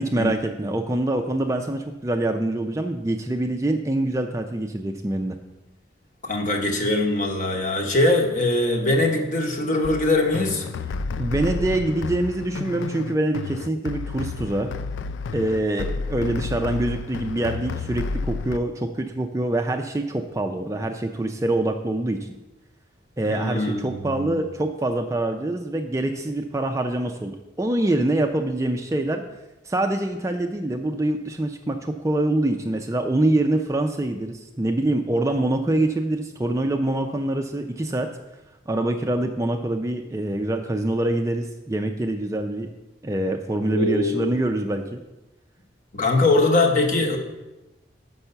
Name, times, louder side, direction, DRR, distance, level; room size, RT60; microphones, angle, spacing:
voice 1, 0.0-5.4 11.2-14.7 15.3-22.3 23.2-29.2 29.7-38.1 38.7-42.7 43.0-45.0, right 1 dB, 15° right, 5 dB, 0.3 m, -25 dB
voice 2, 6.2-10.7 23.2-24.4 43.5-44.3 45.9-47.2, left 2 dB, 40° left, 1 dB, 1.0 m, -22 dB
sound 1, 9.8-18.6, left 4 dB, 85° left, 0.3 m, -31 dB
5.8 x 5.4 x 6.7 m, 1.0 s
head